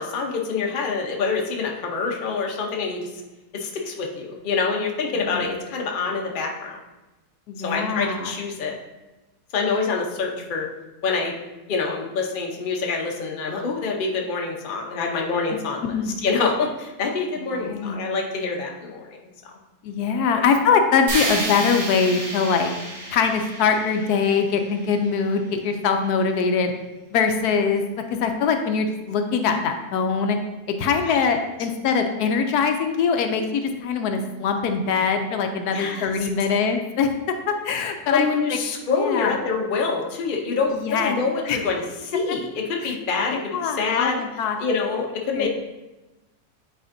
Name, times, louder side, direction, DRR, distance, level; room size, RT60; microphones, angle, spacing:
voice 1, 0.0-3.1 3.5-6.8 7.6-8.8 9.5-10.7 11.0-11.3 11.7-19.0 19.4-19.5 20.3-20.4 31.0-31.3 35.7-36.1 38.1-44.2 44.6-45.5, left 4 dB, 45° left, 0 dB, 0.7 m, -26 dB
voice 2, 7.5-8.3 15.8-16.2 17.5-18.0 19.8-22.7 23.1-26.7 27.1-27.8 28.1-30.4 30.8-38.6 38.9-39.3 40.7-41.2 41.5-41.6 42.8-42.9 43.3-44.6 45.3-45.5, left 5 dB, 80° left, 5 dB, 1.1 m, -23 dB
sound 1, 21.1-25.1, right 1 dB, 50° right, 1.4 m, -31 dB
8.4 x 4.3 x 2.6 m, 1.1 s
omnidirectional pair, 1.7 m